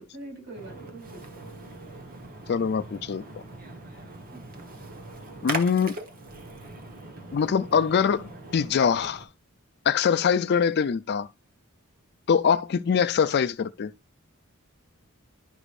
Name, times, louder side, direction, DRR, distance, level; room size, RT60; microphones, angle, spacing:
voice 1, 0.0-1.5 4.3-4.5, right 2 dB, 60° right, 4.3 m, -44 dB
Splash splatter, 0.6-9.2, right 2 dB, 45° right, 1.2 m, -40 dB
voice 2, 2.5-3.2 5.4-6.0 7.3-9.3 9.9-11.3 12.3-13.9, left 6 dB, 50° left, 0.4 m, -23 dB
11.0 x 4.8 x 2.5 m
head